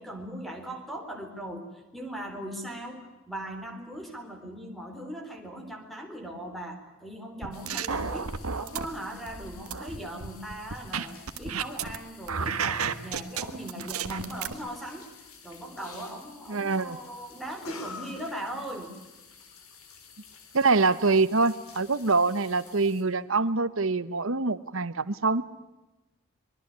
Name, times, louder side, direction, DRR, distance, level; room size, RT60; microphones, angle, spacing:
voice 1, 0.0-1.7 1.9-15.1 15.4-18.9, right 1 dB, ahead, 4 dB, 3.9 m, -39 dB
sound 1, 7.4-8.9 9.3-12.0 12.3-14.5, right 6 dB, 85° right, 1.5 m, -32 dB
sound 2, 7.5-23.0, left 5 dB, 80° left, 4.4 m, -50 dB
voice 2, 16.5-17.0 20.5-25.4, right 3 dB, 65° right, 14 dB, 1.2 m, -25 dB
25.0 x 22.5 x 8.2 m, 1.1 s
head